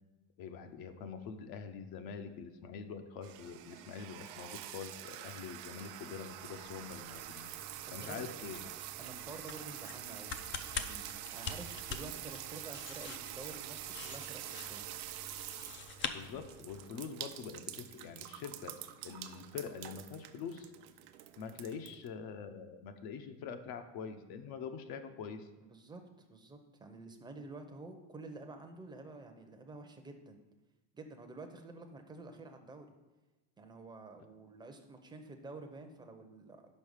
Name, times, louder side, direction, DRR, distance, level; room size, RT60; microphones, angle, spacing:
voice 1, 0.4-7.5 7.9-8.7 16.1-18.7 19.0-20.7 21.4-25.5, left 6 dB, 60° left, 7 dB, 0.8 m, -45 dB
sound 1, 3.2-22.1, right 13 dB, 80° right, 0.7 m, -46 dB
sound 2, 6.2-17.0, left 7 dB, 30° left, 0.4 m, -46 dB
voice 2, 7.9-8.2 9.0-10.3 10.6-11.0 11.3-14.8 21.6-21.7 25.6-30.4 30.9-32.9 33.6-36.7, right 3 dB, 10° right, 4 dB, 0.7 m, -49 dB
5.5 x 5.4 x 6.5 m, 1.1 s
cardioid pair, 140°, 41 cm